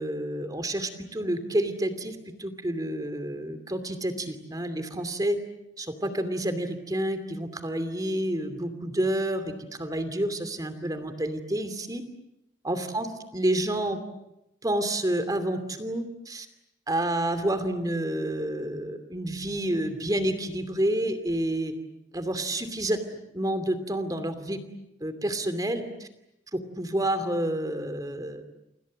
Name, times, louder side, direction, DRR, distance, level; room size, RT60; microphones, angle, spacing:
voice 1, 0.0-5.4 5.8-9.5 9.8-12.0 12.6-13.1 13.3-14.0 14.6-16.5 16.9-21.7 22.1-23.0 23.3-24.6 25.0-26.1 26.5-28.4, right 1 dB, 20° right, 10 dB, 2.7 m, -29 dB
29.0 x 26.0 x 7.6 m, 0.85 s
head